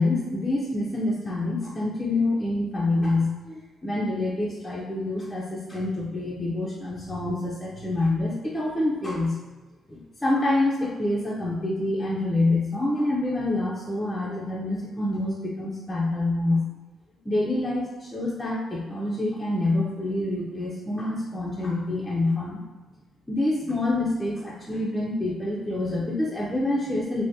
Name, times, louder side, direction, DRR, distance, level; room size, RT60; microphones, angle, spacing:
voice 1, 0.0-9.3 9.9-16.6 17.3-22.6 23.3-27.2, left 2 dB, 10° left, -5 dB, 0.4 m, -26 dB
3.4 x 2.6 x 2.7 m, 1.2 s
cardioid pair, 135°, 0 cm